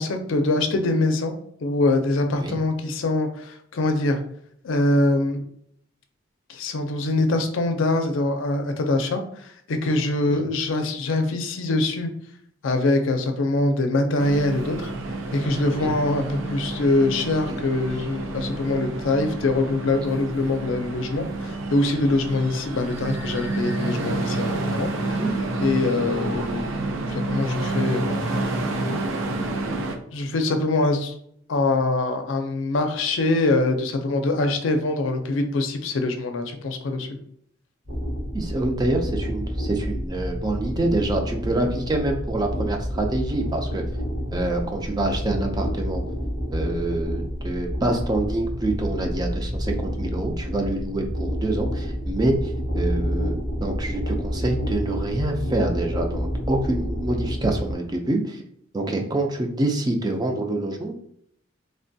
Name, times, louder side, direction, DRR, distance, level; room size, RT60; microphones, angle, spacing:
voice 1, 0.0-1.3 1.6-4.2 4.6-5.4 6.5-12.1 12.6-14.9 15.3-25.2 25.6-28.3 30.1-31.2 31.5-37.2, left 2 dB, 85° left, 6 dB, 0.5 m, -24 dB
sound 1, 14.2-30.0, right 2 dB, 90° right, 0.4 m, -29 dB
sound 2, 37.9-57.7, equal, 70° right, 1.2 m, -29 dB
voice 2, 38.3-43.8 44.3-46.0 46.5-58.4 58.7-60.9, right 2 dB, 20° right, 3 dB, 0.4 m, -26 dB
3.2 x 2.2 x 2.6 m, 0.68 s
head